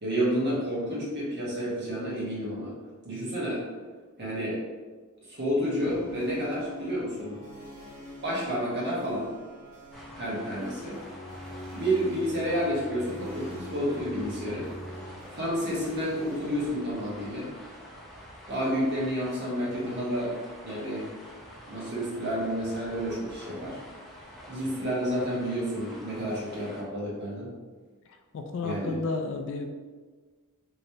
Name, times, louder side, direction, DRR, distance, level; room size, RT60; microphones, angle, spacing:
voice 1, 0.0-2.7 3.0-3.6 4.2-4.6 5.3-7.4 8.2-9.3 10.1-11.0 11.7-14.7 15.3-17.5 18.5-20.3 20.6-21.0 21.7-23.8 24.5-27.5 28.6-29.0, equal, 50° right, -6 dB, 1.1 m, -30 dB
Early Music Group Tuning, 5.8-16.8, left 1 dB, 80° right, 1.3 m, -44 dB
sound 1, 9.9-26.8, equal, ahead, 0.5 m, -47 dB
voice 2, 28.3-29.7, left 3 dB, 55° left, 6 dB, 0.3 m, -32 dB
3.2 x 3.0 x 2.7 m, 1.4 s
head